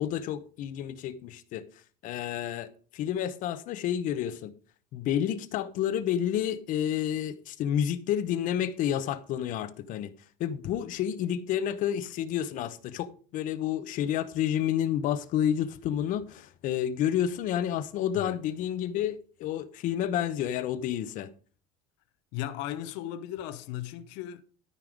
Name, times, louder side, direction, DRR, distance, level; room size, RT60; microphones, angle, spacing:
voice 1, 0.0-1.6 2.0-4.5 4.9-10.1 10.4-21.3, left 10 dB, 45° left, 0.9 m, -30 dB
voice 2, 22.3-24.4, left 12 dB, 65° left, 1.0 m, -36 dB
13.0 x 5.5 x 5.1 m
cardioid pair, 180°, 19 cm